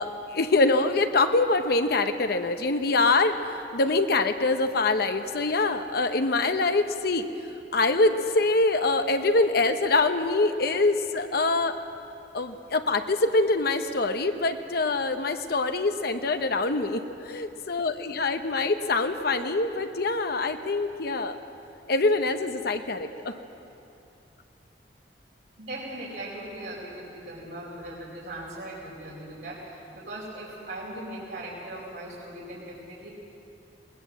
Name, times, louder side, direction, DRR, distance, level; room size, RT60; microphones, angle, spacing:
voice 1, 0.0-7.3 7.7-11.8 12.3-21.4 21.9-23.3, left 3 dB, 60° left, 7 dB, 0.9 m, -24 dB
voice 2, 25.6-33.1, right 1 dB, 75° right, -7 dB, 4.7 m, -39 dB
20.5 x 20.0 x 7.5 m, 2.9 s
head